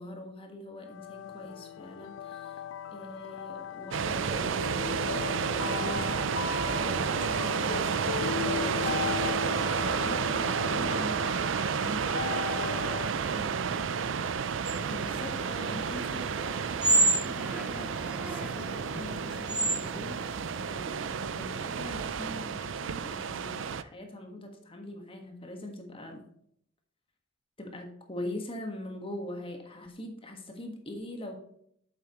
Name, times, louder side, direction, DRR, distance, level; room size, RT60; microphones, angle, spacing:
voice 1, 0.0-2.6 2.9-9.1 10.0-10.7 14.9-16.2 16.8-26.2 27.6-31.4, left 1 dB, 30° left, 3 dB, 1.5 m, -43 dB
sound 1, 0.8-13.2, left 9 dB, 75° left, 0.3 m, -38 dB
sound 2, 3.9-23.8, right 6 dB, 75° right, 0.5 m, -31 dB
voice 2, 9.5-10.3 10.6-12.6 13.0-14.0, right 2 dB, 35° right, 4 dB, 1.5 m, -44 dB
sound 3, 14.7-20.6, right 2 dB, 5° right, 0.7 m, -31 dB
9.0 x 7.4 x 3.0 m, 0.67 s
head